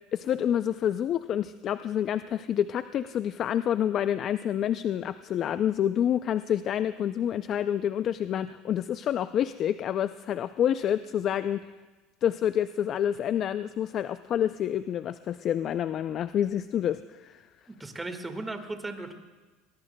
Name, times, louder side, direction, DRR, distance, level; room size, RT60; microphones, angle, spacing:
voice 1, 0.1-11.6 12.2-17.5, left 10 dB, 45° left, 12 dB, 0.4 m, -28 dB
voice 2, 17.8-19.1, right 2 dB, 15° right, 6 dB, 1.7 m, -36 dB
22.5 x 20.5 x 2.2 m, 1.3 s
supercardioid pair, 115°, 0 cm